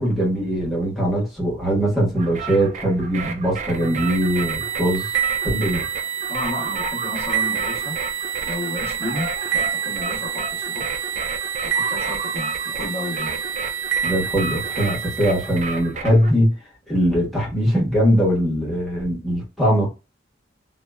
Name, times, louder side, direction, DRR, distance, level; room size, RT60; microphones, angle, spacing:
voice 1, 0.0-5.2 5.4-5.8 14.0-16.5 16.9-19.9, equal, ahead, 1.2 m, -21 dB
sound 1, 2.2-16.3, right 4 dB, 40° right, 0.4 m, -32 dB
sound 2, 3.7-15.9, right 7 dB, 90° right, 0.6 m, -28 dB
voice 2, 6.3-8.0 8.4-10.9 11.6-13.4, left 2 dB, 30° left, 1.2 m, -32 dB
2.8 x 2.2 x 2.2 m
head